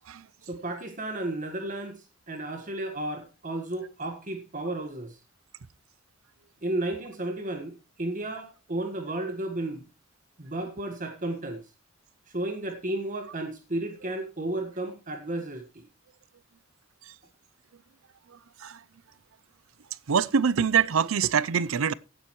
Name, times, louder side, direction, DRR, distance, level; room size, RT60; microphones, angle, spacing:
voice 1, 0.5-5.2 6.6-7.7 8.0-9.8 10.4-11.6 12.3-15.8, right 1 dB, 40° right, 1.5 m, -33 dB
voice 2, 18.3-18.8 20.1-21.9, right 6 dB, 80° right, 0.6 m, -25 dB
16.0 x 10.0 x 3.1 m
head